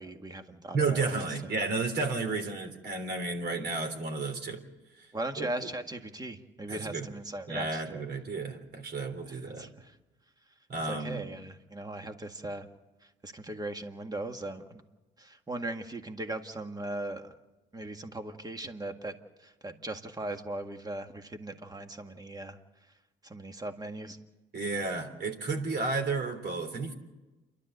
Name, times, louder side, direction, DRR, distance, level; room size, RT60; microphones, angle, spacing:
voice 1, 0.0-1.1 5.1-8.0 9.3-10.0 10.8-12.7 13.0-14.8 15.2-17.3 17.7-19.1 19.4-22.6 23.2-24.2, right 2 dB, 20° right, 6 dB, 1.8 m, -39 dB
voice 2, 0.7-4.6 5.0-5.1 5.4-5.5 6.7-7.1 7.5-9.7 10.7-11.2 24.5-26.9, right 3 dB, 55° right, 5 dB, 3.6 m, -32 dB
28.5 x 12.0 x 8.0 m, 1.1 s
cardioid pair, 90°, 20 cm